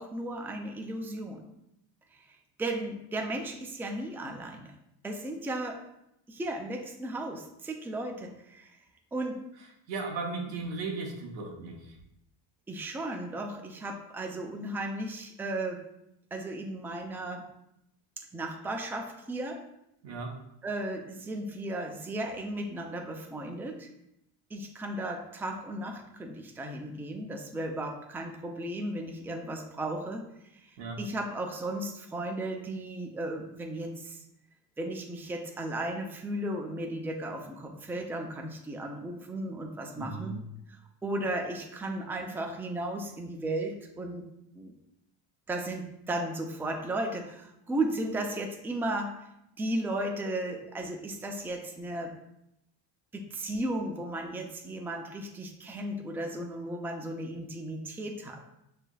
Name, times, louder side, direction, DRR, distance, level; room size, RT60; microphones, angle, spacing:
voice 1, 0.0-1.4 2.1-2.2 2.6-4.7 5.0-5.8 6.3-8.8 9.1-9.4 12.7-15.8 16.3-17.4 18.2-19.6 20.6-23.9 24.5-30.3 30.5-34.2 34.8-40.4 40.7-44.2 44.6-44.7 45.5-49.1 49.6-52.1 53.1-58.4, right 1 dB, 5° right, 2 dB, 0.4 m, -35 dB
voice 2, 9.9-12.0 20.0-20.4 30.8-31.0 40.0-40.4, right 3 dB, 85° right, 0 dB, 1.1 m, -36 dB
6.2 x 3.4 x 2.3 m, 0.82 s
cardioid pair, 100°, 46 cm